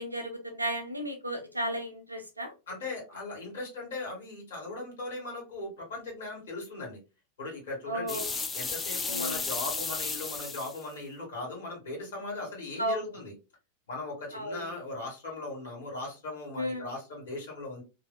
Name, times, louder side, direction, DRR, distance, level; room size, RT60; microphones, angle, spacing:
voice 1, 0.0-2.5 7.9-8.3 9.1-9.4 12.8-13.1 14.3-14.7 16.6-16.9, equal, 85° right, 6 dB, 0.5 m, -34 dB
voice 2, 2.7-7.0 7.4-8.2 8.5-13.3 13.9-17.8, left 2 dB, 60° left, -1 dB, 1.4 m, -38 dB
sound 1, 8.1-10.8, left 4 dB, 15° left, 0.3 m, -33 dB
2.6 x 2.1 x 2.2 m, 0.27 s
figure-of-eight pair, 90°, 0 cm